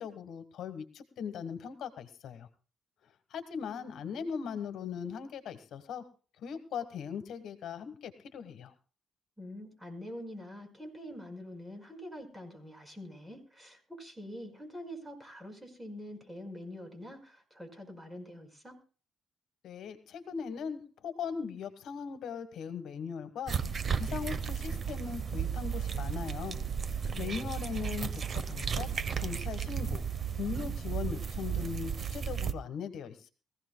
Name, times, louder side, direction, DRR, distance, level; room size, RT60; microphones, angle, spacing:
voice 1, 0.0-2.5 3.3-6.1 6.4-8.7 19.6-23.6 24.0-26.6 27.2-28.9 29.1-30.1 30.4-33.3, left 7 dB, 75° left, 11 dB, 1.3 m, -39 dB
voice 2, 9.4-18.8 27.0-27.6, equal, 15° right, 5 dB, 4.9 m, -45 dB
sound 1, 23.5-32.5, right 7 dB, 45° right, 0.8 m, -34 dB
22.5 x 15.5 x 2.2 m, 0.38 s
cardioid pair, 90°, 0 cm